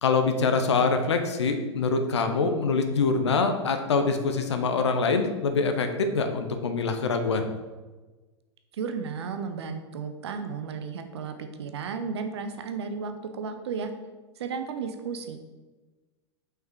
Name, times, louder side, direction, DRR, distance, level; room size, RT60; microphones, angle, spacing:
voice 1, 0.0-7.5, left 4 dB, 70° left, 6 dB, 0.9 m, -24 dB
voice 2, 8.7-13.9 14.4-15.4, right 5 dB, 60° right, 7 dB, 0.8 m, -34 dB
6.0 x 5.6 x 4.7 m, 1.3 s
figure-of-eight pair, 95°, 15 cm